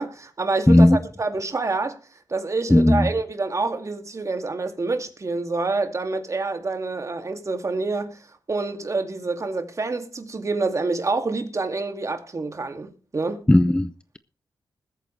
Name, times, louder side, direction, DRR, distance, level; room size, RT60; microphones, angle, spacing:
voice 1, 0.0-2.0 2.3-8.2 8.5-13.5, right 3 dB, 40° right, 2.4 m, -27 dB
voice 2, 0.7-1.0 2.7-3.1 13.5-14.2, left 1 dB, 10° left, 0.6 m, -16 dB
21.0 x 9.1 x 3.3 m
cardioid pair, 60°, 8 cm